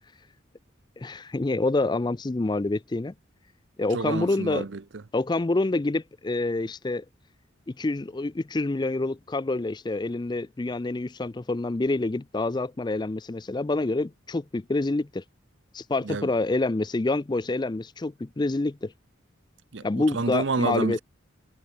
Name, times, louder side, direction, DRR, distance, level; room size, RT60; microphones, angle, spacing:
voice 1, 1.0-3.1 3.8-4.7 5.1-7.0 7.7-15.2 15.7-18.9 19.8-21.0, left 2 dB, 20° left, 0.4 m, -27 dB
voice 2, 3.9-5.0 16.0-16.3 19.7-21.0, right 4 dB, 65° right, 0.7 m, -29 dB
head